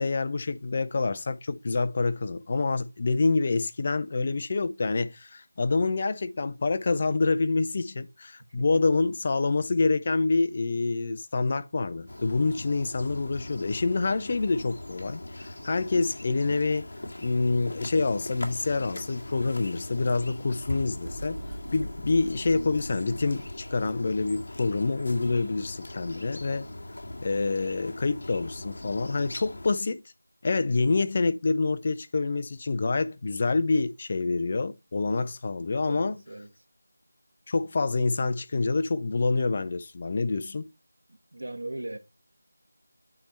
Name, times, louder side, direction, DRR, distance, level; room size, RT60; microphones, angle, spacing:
voice 1, 0.0-16.9 17.2-21.4 21.7-26.7 27.2-30.0 30.4-36.2 37.5-40.7, left 3 dB, 25° left, 0.4 m, -27 dB
sound 1, 12.1-29.7, left 1 dB, 50° left, 1.8 m, -40 dB
sound 2, 21.0-26.5 26.8-26.9 27.4-27.5, equal, 25° right, 1.5 m, -43 dB
voice 2, 35.8-36.5 41.3-42.0, right 1 dB, 70° right, 1.3 m, -37 dB
8.7 x 3.3 x 4.3 m
figure-of-eight pair, 175°, 0 cm